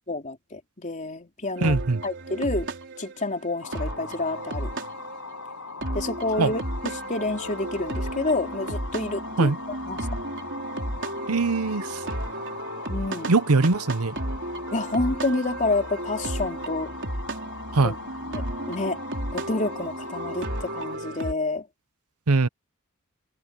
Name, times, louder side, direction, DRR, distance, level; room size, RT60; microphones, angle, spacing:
voice 1, 0.1-2.7 3.0-4.7 5.9-9.5 9.8-10.1 12.9-13.3 14.7-16.9 17.8-18.0 18.2-19.0 19.3-21.6, left 2 dB, 35° left, 3.6 m, -29 dB
sound 1, 1.6-21.3, right 1 dB, 55° right, 4.4 m, -34 dB
voice 2, 1.6-2.0 6.4-6.5 9.4-9.6 11.3-12.0 13.3-14.1 17.7-17.9 22.3-22.5, right 3 dB, 85° right, 0.9 m, -21 dB
sound 2, 3.6-21.0, left 4 dB, 75° left, 5.8 m, -40 dB
head